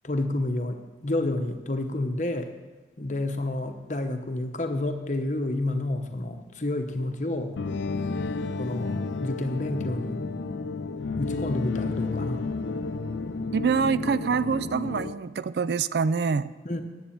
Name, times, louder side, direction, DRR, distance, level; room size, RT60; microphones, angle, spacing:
voice 1, 0.0-2.5 3.0-7.6 8.6-10.2 11.2-12.4 16.6-16.8, left 1 dB, 40° left, 6 dB, 1.0 m, -29 dB
sound 1, 7.6-15.1, left 3 dB, 80° left, 0.6 m, -31 dB
voice 2, 13.5-16.5, right 5 dB, 60° right, 15 dB, 0.4 m, -25 dB
10.0 x 8.1 x 8.6 m, 1.3 s
head